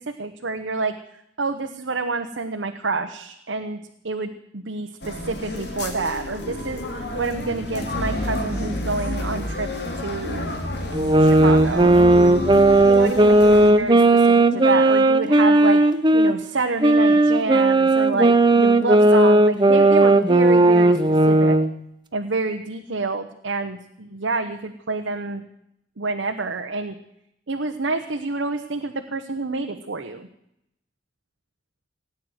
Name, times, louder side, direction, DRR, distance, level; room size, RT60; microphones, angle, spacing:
voice 1, 0.1-1.0 1.4-9.7 10.0-10.5 11.2-12.3 12.8-21.6 22.1-25.4 26.0-27.0 27.5-30.3, right 3 dB, 75° right, 5 dB, 1.0 m, -28 dB
sound 1, 5.0-13.7, left 1 dB, 60° left, 2.5 m, -30 dB
sound 2, 10.9-16.3 16.8-21.7, right 2 dB, 25° right, 0.8 m, -15 dB
18.0 x 9.5 x 7.9 m, 0.79 s
head